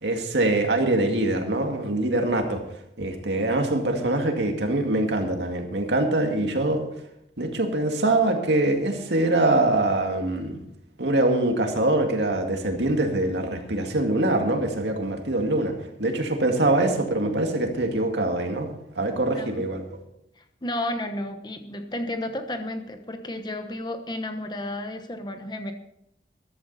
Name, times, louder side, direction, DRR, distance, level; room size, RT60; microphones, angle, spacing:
voice 1, 0.0-2.6 3.0-6.8 7.4-10.6 11.0-15.7 16.0-18.7 19.0-19.8, right 2 dB, 80° right, 4 dB, 2.2 m, -23 dB
voice 2, 16.8-17.1 19.3-19.6 20.4-25.7, left 1 dB, 25° left, 7 dB, 1.0 m, -32 dB
14.0 x 12.5 x 4.2 m, 0.79 s
head